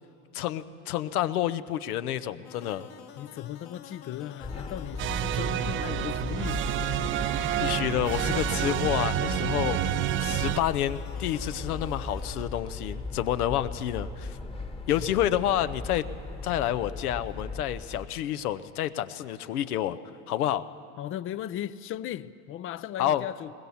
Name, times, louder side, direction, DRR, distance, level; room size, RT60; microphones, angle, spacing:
voice 1, 0.3-2.9 7.6-14.4 14.9-16.0 16.4-20.0 20.3-20.7 23.0-23.2, left 12 dB, 80° left, 0.9 m, -29 dB
sound 1, 2.4-12.5, left 9 dB, 55° left, 1.6 m, -48 dB
voice 2, 3.2-6.7 14.9-15.1 21.0-23.5, left 11 dB, 30° left, 0.5 m, -37 dB
sound 2, 4.4-18.1, left 3 dB, 15° left, 1.2 m, -38 dB
sound 3, 5.0-10.6, right 12 dB, 30° right, 0.4 m, -29 dB
20.5 x 20.0 x 7.1 m
hypercardioid pair, 100°, 44 cm